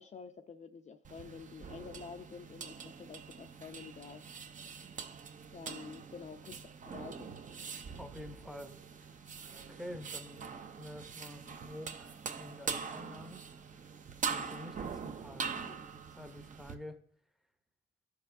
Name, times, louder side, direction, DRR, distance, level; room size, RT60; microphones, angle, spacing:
voice 1, 0.0-4.2 5.5-6.6 6.8-7.4 15.6-15.8, left 6 dB, 40° left, 0.5 m, -49 dB
sound 1, 1.0-16.7, right 6 dB, 40° right, 0.6 m, -43 dB
voice 2, 8.0-8.8 9.7-13.5 14.2-15.5 16.1-17.0, left 1 dB, ahead, 0.7 m, -48 dB
14.0 x 4.7 x 2.6 m
cardioid pair, 90°, 20 cm